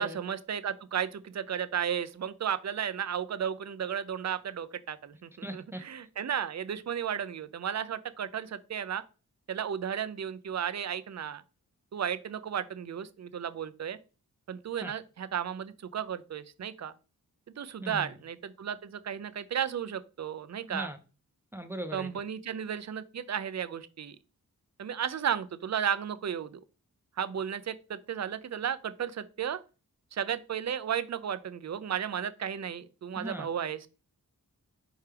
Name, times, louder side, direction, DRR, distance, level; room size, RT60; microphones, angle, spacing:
voice 1, 0.0-9.0 9.5-11.4 11.9-14.0 14.5-16.9 17.6-20.9 21.9-24.2 24.8-26.5 27.2-29.6 30.1-33.9, right 8 dB, 50° right, 0.5 m, -34 dB
voice 2, 5.4-5.8 14.8-14.9 17.8-18.2 20.7-21.0 21.5-22.1 33.2-33.5, equal, 5° right, 0.6 m, -38 dB
4.5 x 3.4 x 3.3 m
cardioid pair, 55°, 37 cm